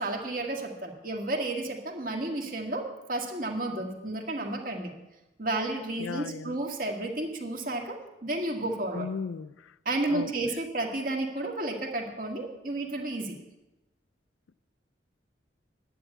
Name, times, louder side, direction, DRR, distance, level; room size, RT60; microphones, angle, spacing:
voice 1, 0.0-4.9 5.4-9.1 9.9-13.3, right 2 dB, 45° right, 1.9 m, -32 dB
voice 2, 6.0-6.6 8.9-9.7 10.1-10.3, left 5 dB, 90° left, 0.4 m, -36 dB
11.0 x 8.2 x 8.3 m
head